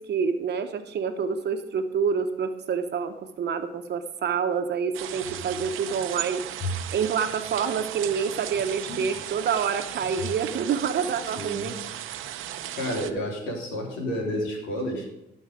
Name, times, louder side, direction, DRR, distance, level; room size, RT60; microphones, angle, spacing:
voice 1, 0.0-6.4 6.9-11.8, right 6 dB, 60° right, 7 dB, 1.0 m, -27 dB
sound 1, 4.9-13.1, right 12 dB, 85° right, 0.7 m, -36 dB
sound 2, 5.2-6.1 6.5-9.6 10.0-10.5 10.8-10.9, left 2 dB, 25° left, 2.3 m, -38 dB
voice 2, 11.3-11.7 12.7-15.1, equal, 90° left, 0 dB, 3.0 m, -30 dB
12.5 x 6.4 x 5.0 m, 0.86 s
cardioid pair, 90°, 20 cm